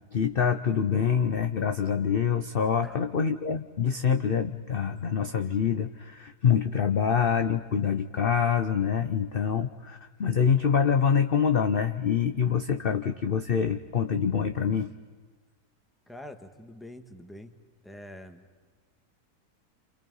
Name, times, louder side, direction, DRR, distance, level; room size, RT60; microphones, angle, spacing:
voice 1, 0.1-14.9, left 7 dB, 45° left, 7 dB, 0.8 m, -25 dB
voice 2, 16.1-17.5 17.8-18.5, left 1 dB, ahead, 6 dB, 1.5 m, -45 dB
29.0 x 27.5 x 5.5 m, 1.4 s
omnidirectional pair, 1.7 m